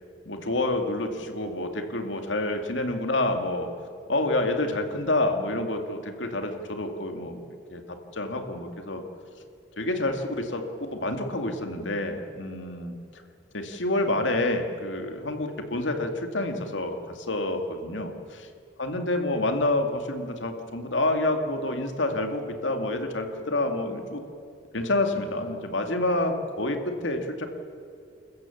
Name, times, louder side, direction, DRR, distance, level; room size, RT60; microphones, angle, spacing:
voice 1, 0.3-3.7 4.1-7.3 7.7-7.8 8.2-9.0 9.8-10.1 10.5-10.6 11.0-12.9 13.5-17.0 17.3-18.1 18.8-24.2 24.7-26.8 27.0-27.5, left 2 dB, 80° left, 5 dB, 2.3 m, -28 dB
29.0 x 15.0 x 7.2 m, 2.4 s
head